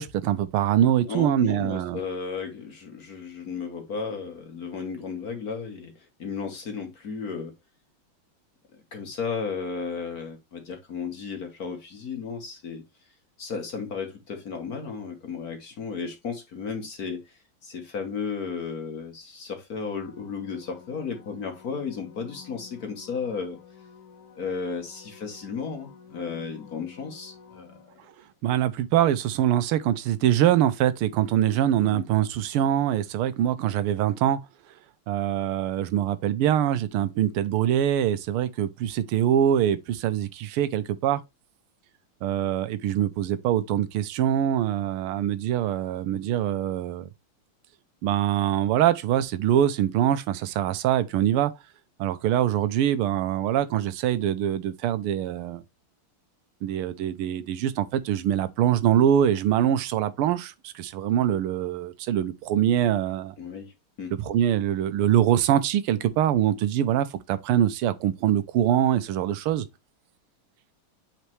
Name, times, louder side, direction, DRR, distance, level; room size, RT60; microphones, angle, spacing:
voice 1, 0.0-2.0 28.4-34.4 35.1-41.2 42.2-47.1 48.0-51.5 52.0-55.6 56.6-63.3 64.1-69.6, right 11 dB, 85° right, 1.5 m, -24 dB
voice 2, 1.0-7.5 8.9-12.8 13.4-17.4 17.6-23.6 24.4-27.8 31.8-32.0 63.4-63.7 64.0-64.1, left 5 dB, 50° left, 1.5 m, -34 dB
sound 1, 19.7-28.4 33.7-33.8, left 7 dB, 70° left, 2.0 m, -51 dB
8.2 x 4.3 x 3.0 m
omnidirectional pair, 2.4 m